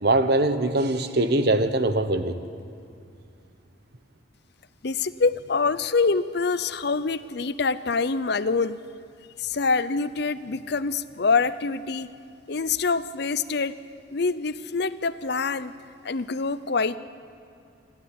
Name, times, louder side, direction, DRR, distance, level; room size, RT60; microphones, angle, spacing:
voice 1, 0.0-2.4, right 2 dB, 55° right, 10 dB, 1.1 m, -22 dB
voice 2, 4.8-8.8 9.4-12.1 12.5-13.7 14.1-15.7 16.0-17.0, left 4 dB, 55° left, 15 dB, 0.6 m, -25 dB
28.0 x 12.0 x 9.9 m, 2.4 s
head